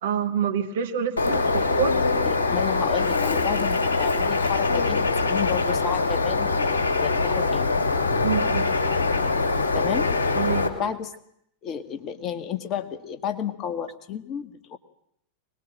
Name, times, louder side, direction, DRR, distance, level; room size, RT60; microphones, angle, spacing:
voice 1, 0.0-2.0 8.2-8.7 10.3-10.9, right 8 dB, 60° right, 7 dB, 2.1 m, -27 dB
Bird, 1.2-10.7, left 3 dB, 70° left, 2.6 m, -23 dB
voice 2, 2.3-7.7 9.7-10.1 10.7-11.1 11.6-14.8, left 9 dB, 35° left, 9 dB, 1.8 m, -31 dB
23.0 x 20.5 x 8.9 m, 0.73 s
figure-of-eight pair, 90°, 0 cm